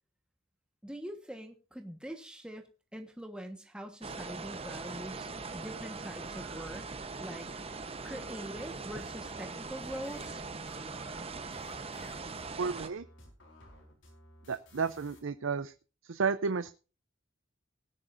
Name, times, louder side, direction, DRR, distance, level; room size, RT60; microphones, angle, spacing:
voice 1, 0.8-2.6 2.9-6.9 7.2-7.5 8.0-10.4, equal, 5° right, 4 dB, 1.3 m, -43 dB
sound 1, 4.0-12.9, right 4 dB, 30° right, 0.9 m, -41 dB
sound 2, 6.2-6.8 7.8-8.5 10.6-11.3 11.8-11.9, right 7 dB, 60° right, 1.2 m, -57 dB
sound 3, 8.6-15.2, left 1 dB, 70° left, 4.6 m, -55 dB
voice 2, 12.6-13.1 14.5-15.7 16.0-16.7, right 5 dB, 85° right, 12 dB, 0.6 m, -32 dB
19.0 x 10.0 x 2.6 m, 0.33 s
head